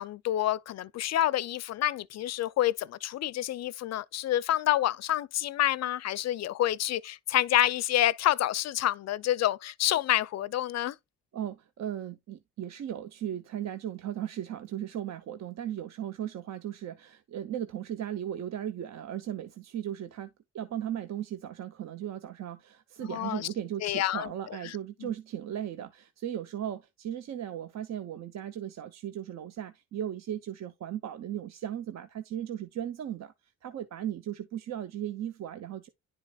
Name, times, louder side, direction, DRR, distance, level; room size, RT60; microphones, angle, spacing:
voice 1, 0.0-10.9 23.0-23.5 23.8-24.3 24.6-24.7 25.0-25.1, left 13 dB, 60° left, 0.5 m, -28 dB
voice 2, 11.3-20.3 20.5-33.3 33.6-35.9, right 10 dB, 60° right, 0.7 m, -37 dB
10.5 x 4.8 x 2.3 m
cardioid pair, 90°, 30 cm